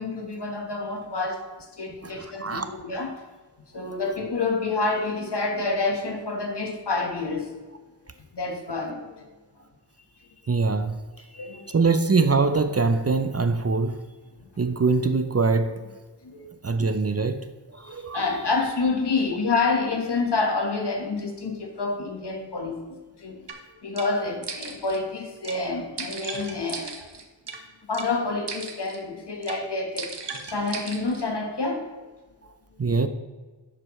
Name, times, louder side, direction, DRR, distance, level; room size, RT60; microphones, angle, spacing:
voice 1, 0.0-1.5 1.8-3.1 3.7-7.6 8.3-9.3 11.3-11.8 16.2-16.5 17.8-22.8 23.2-23.4 23.8-26.9 27.9-30.1 30.5-31.9 32.7-32.8, left 3 dB, 65° left, 1.5 m, -28 dB
voice 2, 2.0-2.7 10.5-11.0 11.7-14.0 14.6-15.8 16.6-17.5 17.7-18.2 32.8-33.1, right 4 dB, 35° right, 0.6 m, -23 dB
sound 1, 23.5-23.6 24.0-24.1 24.4-25.0 25.4-25.6 26.0-27.6 27.9-28.1 28.5-29.0 29.4-29.6 30.0-31.2, right 4 dB, 70° right, 1.2 m, -37 dB
11.0 x 7.7 x 3.2 m
wide cardioid pair, 60°, 43 cm